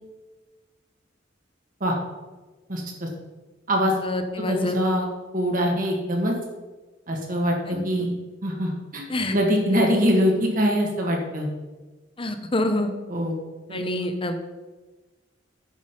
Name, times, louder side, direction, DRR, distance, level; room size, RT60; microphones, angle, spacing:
voice 1, 2.7-3.1 3.7-3.9 4.4-5.1 5.3-6.3 7.1-8.1 8.4-9.0 9.3-11.5 13.1-13.4 13.7-14.1, equal, 45° right, 0 dB, 1.7 m, -23 dB
voice 2, 4.0-4.8 7.7-8.1 9.1-9.3 12.2-12.9 13.7-14.4, left 1 dB, 30° left, 7 dB, 0.9 m, -26 dB
9.2 x 6.2 x 5.2 m, 1.2 s
head